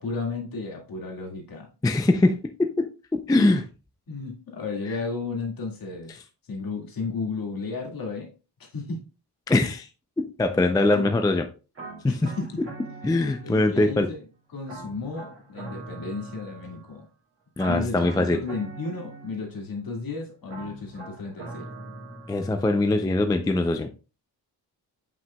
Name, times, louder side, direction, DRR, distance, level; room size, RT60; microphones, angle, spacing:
voice 1, 0.0-1.7 4.1-6.2 6.5-8.3 8.6-9.1 10.9-11.1 12.1-12.6 13.4-17.0 17.7-21.7, left 4 dB, 55° left, 1 dB, 2.0 m, -33 dB
voice 2, 1.8-3.7 9.5-9.9 10.2-11.5 12.0-12.3 13.0-14.1 17.6-18.4 22.3-23.9, left 2 dB, 10° left, 6 dB, 0.4 m, -22 dB
sound 1, 11.7-13.8 14.7-17.0 17.6-19.7 20.5-22.9, right 3 dB, 35° right, 2.3 m, -42 dB
7.8 x 5.8 x 2.2 m, 0.32 s
wide cardioid pair, 165°, 42 cm